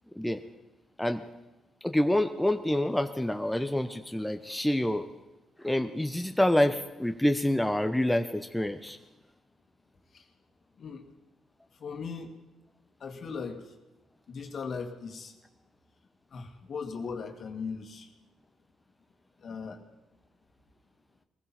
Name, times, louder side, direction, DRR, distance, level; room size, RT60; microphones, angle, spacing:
voice 1, 1.8-5.1 5.6-9.0, left 1 dB, 5° left, 6 dB, 0.9 m, -27 dB
voice 2, 11.8-12.3 13.0-13.6 14.3-15.3 16.3-18.1 19.4-19.8, left 5 dB, 55° left, 4 dB, 2.1 m, -38 dB
21.5 x 15.5 x 4.3 m, 1.1 s
supercardioid pair, 55°, 0 cm